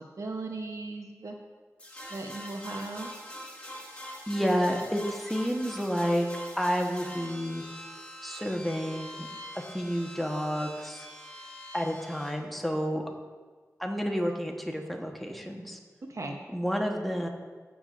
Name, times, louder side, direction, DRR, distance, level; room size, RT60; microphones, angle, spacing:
voice 1, 0.0-1.4 2.1-3.1 16.1-16.4, right 2 dB, 60° right, 3 dB, 0.9 m, -37 dB
sound 1, 1.8-12.3, equal, 20° left, 2.7 m, -44 dB
voice 2, 4.3-6.3 6.6-7.6 8.2-9.3 9.5-11.1 11.7-13.0 13.8-15.8 16.5-17.3, equal, ahead, 1 dB, 1.2 m, -30 dB
16.0 x 7.0 x 2.5 m, 1.4 s
wide cardioid pair, 65°, 6 cm